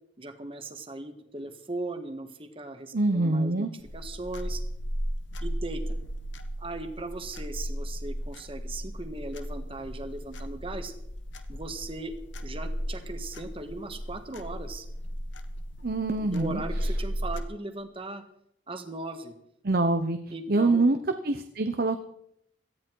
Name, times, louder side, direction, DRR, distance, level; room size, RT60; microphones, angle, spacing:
voice 1, 0.2-4.6 5.4-6.0 6.6-10.9 11.5-12.1 12.4-14.9 16.2-18.2 18.7-19.3 20.3-20.8, right 2 dB, 30° right, 7 dB, 1.5 m, -38 dB
voice 2, 2.9-3.7 15.8-16.6 19.6-20.2 20.5-21.0 21.2-22.0, right 2 dB, 50° right, 8 dB, 0.8 m, -24 dB
sound 1, 3.8-17.4, equal, 70° left, 1.4 m, -35 dB
18.0 x 13.5 x 4.6 m, 0.77 s
head